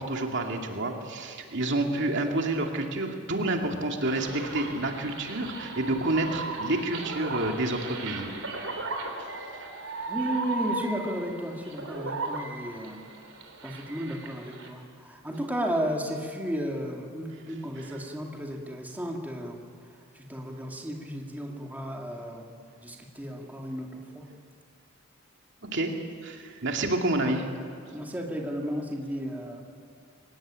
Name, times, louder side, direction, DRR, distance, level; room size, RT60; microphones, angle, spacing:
voice 1, 0.0-8.3 25.6-27.5, right 2 dB, 60° right, 2 dB, 2.5 m, -29 dB
sound 1, 4.0-14.7, right 3 dB, 80° right, 3.7 m, -36 dB
voice 2, 10.1-13.0 13.6-19.7 20.1-22.5 22.8-24.3 27.2-27.3 27.9-29.6, equal, 10° right, 0 dB, 2.4 m, -34 dB
24.0 x 19.0 x 8.9 m, 2.4 s
head